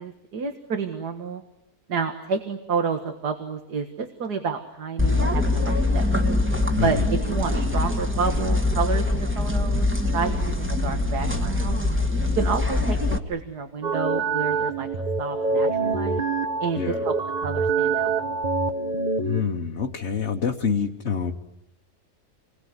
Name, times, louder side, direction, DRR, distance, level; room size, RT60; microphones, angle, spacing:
voice 1, 0.0-1.4 1.9-6.2 6.8-9.9 10.1-11.8 12.4-13.0 13.3-14.9 15.2-16.2 16.6-17.2 17.4-18.5, right 5 dB, 75° right, 7 dB, 2.2 m, -29 dB
sound 1, 5.0-13.2, left 2 dB, 10° right, 1.7 m, -23 dB
voice 2, 6.8-7.1 16.7-17.0 19.2-21.3, left 6 dB, 45° left, 1 dB, 1.5 m, -26 dB
sound 2, 13.8-19.4, right 4 dB, 30° right, 1.3 m, -25 dB
28.5 x 21.5 x 9.7 m, 0.85 s
omnidirectional pair, 1.7 m